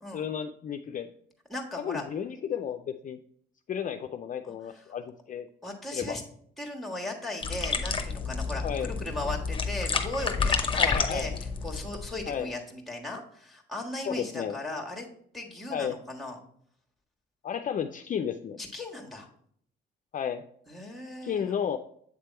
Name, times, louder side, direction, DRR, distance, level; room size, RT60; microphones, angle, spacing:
voice 1, 0.1-1.1 1.8-3.2 3.7-5.5 5.9-6.2 8.6-8.9 10.8-11.4 12.3-12.5 14.1-14.6 15.7-16.0 17.4-18.6 20.1-20.4 21.2-21.8, left 8 dB, 40° left, 6 dB, 0.4 m, -33 dB
voice 2, 1.5-2.0 4.4-4.8 5.6-6.2 6.6-11.3 11.6-15.1 15.3-16.4 18.6-19.3 20.7-21.5, left 2 dB, ahead, 1 dB, 1.5 m, -37 dB
sound 1, 7.4-12.4, left 4 dB, 25° left, 0.8 m, -30 dB
8.1 x 3.4 x 4.4 m, 0.64 s
cardioid pair, 90°, 20 cm